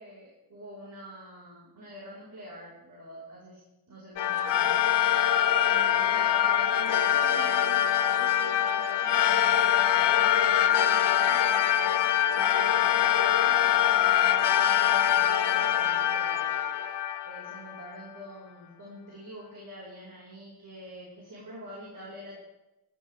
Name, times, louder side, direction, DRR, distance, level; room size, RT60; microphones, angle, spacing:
voice 1, 0.0-5.2 5.6-11.9 12.3-16.5 17.2-22.4, equal, 50° right, -5 dB, 5.5 m, -46 dB
sound 1, 4.2-17.9, left 11 dB, 85° left, 0.9 m, -24 dB
18.5 x 13.5 x 3.6 m, 0.95 s
wide cardioid pair, 120°, 41 cm